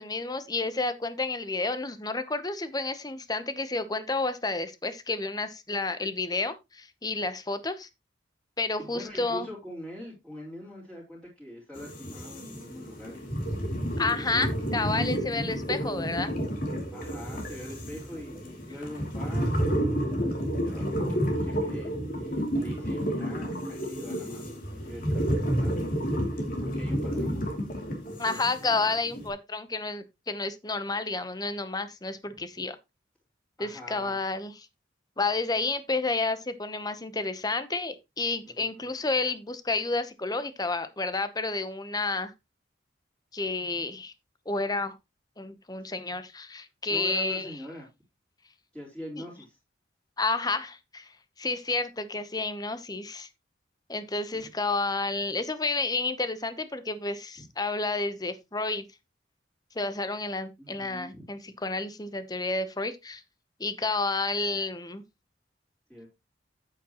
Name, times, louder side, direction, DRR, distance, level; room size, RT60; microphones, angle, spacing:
voice 1, 0.0-7.9 8.6-9.5 14.0-16.3 28.2-32.8 33.6-34.5 35.2-42.3 43.3-44.1 44.5-44.9 45.4-47.5 50.2-51.1 51.4-53.3 53.9-58.9 59.7-63.2 63.6-65.0, left 3 dB, 20° left, 0.9 m, -30 dB
voice 2, 8.8-13.2 16.9-27.5 32.3-32.4 33.6-34.2 38.4-38.9 46.9-47.9 48.7-49.6 54.3-54.5 57.4-57.5 60.6-61.2 65.9-66.1, equal, 5° left, 4.1 m, -43 dB
sound 1, 11.8-29.3, equal, 50° left, 2.8 m, -30 dB
8.8 x 8.8 x 3.0 m
head